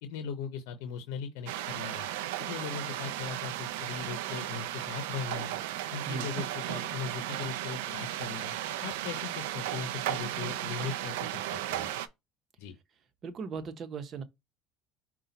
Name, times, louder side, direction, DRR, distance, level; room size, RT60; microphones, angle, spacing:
voice 1, 0.0-2.1 2.4-5.6 5.9-8.5 8.8-11.3 11.7-11.9 12.6-12.7, left 6 dB, 80° left, 0.8 m, -39 dB
sound 1, 1.5-12.1, right 13 dB, 85° right, 0.5 m, -35 dB
voice 2, 13.2-14.2, right 5 dB, 40° right, 0.9 m, -37 dB
5.6 x 2.4 x 3.9 m
supercardioid pair, 105°, 0 cm